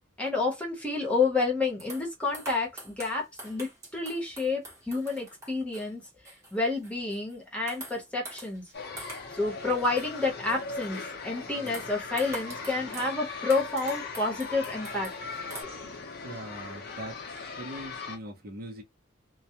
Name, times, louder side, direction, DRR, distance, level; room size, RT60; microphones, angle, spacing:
voice 1, 0.2-6.0 6.5-8.6 9.3-15.1, left 3 dB, 5° left, 0.9 m, -29 dB
sound 1, 1.8-7.4 7.7-9.4 9.7-11.0 11.7-13.2 13.5-15.6, right 1 dB, 15° right, 1.0 m, -45 dB
sound 2, 8.7-18.2, left 4 dB, 55° left, 0.6 m, -39 dB
voice 2, 16.2-17.2 17.6-18.8, right 1 dB, 50° right, 0.6 m, -41 dB
2.3 x 2.1 x 2.7 m
head